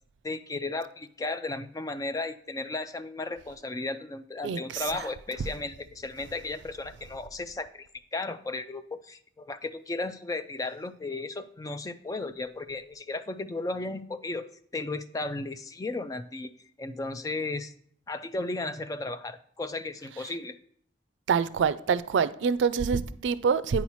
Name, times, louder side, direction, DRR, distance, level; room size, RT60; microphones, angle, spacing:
voice 1, 0.2-7.9 8.1-16.5 16.8-17.7 18.1-20.6, left 2 dB, 20° left, 12 dB, 0.3 m, -35 dB
voice 2, 4.4-4.8 21.3-23.8, right 6 dB, 90° right, 15 dB, 0.4 m, -26 dB
8.5 x 5.6 x 3.0 m, 0.63 s
head